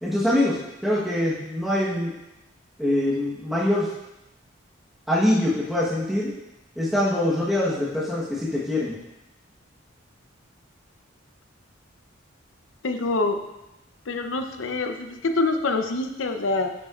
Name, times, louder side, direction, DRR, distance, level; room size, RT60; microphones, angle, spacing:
voice 1, 0.0-0.6 0.8-2.1 2.8-3.9 5.1-6.3 6.8-8.9, left 1 dB, ahead, -9 dB, 1.2 m, -23 dB
voice 2, 12.8-13.4 14.1-16.7, left 3 dB, 75° left, 6 dB, 0.7 m, -25 dB
9.4 x 7.4 x 2.5 m, 0.94 s
head